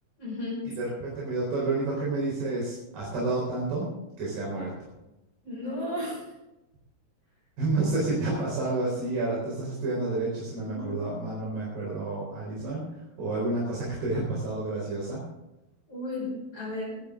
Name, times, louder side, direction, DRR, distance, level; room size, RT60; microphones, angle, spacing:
voice 1, 0.2-0.7 5.4-6.2 10.6-11.1 15.9-17.0, left 1 dB, 40° left, -6 dB, 6.2 m, -34 dB
voice 2, 0.8-3.9 4.2-4.9 7.6-15.3, right 2 dB, 80° right, -5 dB, 6.1 m, -30 dB
23.5 x 10.5 x 3.7 m, 0.94 s
omnidirectional pair, 4.4 m